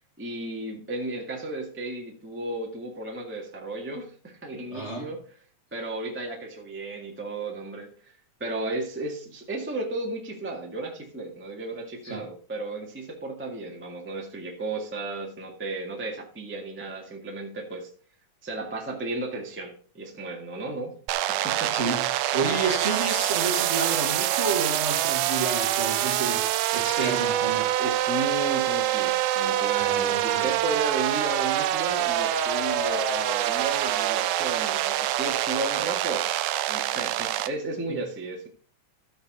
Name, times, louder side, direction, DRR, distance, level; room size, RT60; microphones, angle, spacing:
voice 1, 0.2-5.2 5.7-8.1 8.4-17.9 18.4-21.0 21.3-21.8 27.0-27.2 27.8-36.4 36.7-38.5, right 2 dB, 5° right, 1.1 m, -34 dB
voice 2, 4.7-5.1 12.0-12.3 21.7-27.7 29.8-30.5 37.9-38.0, right 3 dB, 30° right, 1.5 m, -31 dB
sound 1, 21.1-37.5, right 13 dB, 85° right, 2.1 m, -25 dB
sound 2, 27.2-27.9 31.2-33.4, left 16 dB, 75° left, 2.0 m, -38 dB
14.5 x 5.8 x 4.0 m
omnidirectional pair, 3.5 m